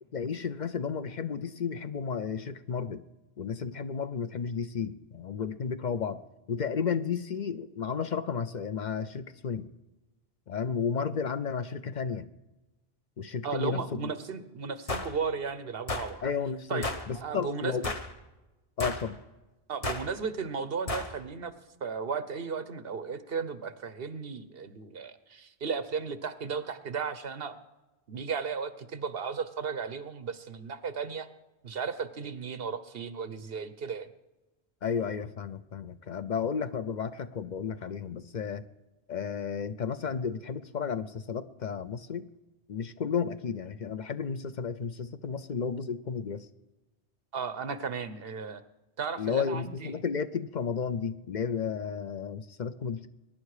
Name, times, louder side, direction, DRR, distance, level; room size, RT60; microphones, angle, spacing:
voice 1, 0.1-3.0 3.4-6.2 6.5-9.7 10.5-12.3 13.2-14.1 16.2-17.9 18.8-19.2 34.8-38.6 39.1-42.3 42.7-46.5 49.2-53.1, left 6 dB, 50° left, 11 dB, 0.7 m, -33 dB
voice 2, 13.4-16.2 16.7-16.9 17.1-17.8 19.7-21.5 21.8-27.6 28.1-31.3 31.6-34.1 47.3-48.6 49.0-49.9, right 5 dB, 65° right, 12 dB, 1.1 m, -35 dB
sound 1, 14.9-15.1 15.9-16.1 16.8-17.1 17.8-18.1 18.8-19.1 19.8-20.1 20.9-21.1, left 2 dB, 35° left, 1.1 m, -32 dB
23.0 x 10.5 x 4.9 m, 1.1 s
omnidirectional pair, 1.1 m